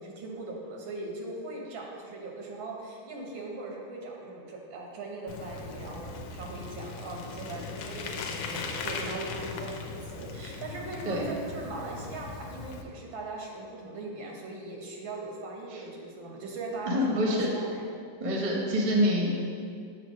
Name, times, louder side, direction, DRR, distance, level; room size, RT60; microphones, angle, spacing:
voice 1, 0.0-17.9, right 2 dB, 90° right, -1 dB, 1.8 m, -40 dB
Bicycle, 5.3-12.8, left 4 dB, 85° left, 1.4 m, -39 dB
voice 2, 16.9-17.6 18.2-19.3, equal, 35° right, -2 dB, 0.9 m, -26 dB
7.5 x 3.1 x 6.2 m, 2.5 s
omnidirectional pair, 2.1 m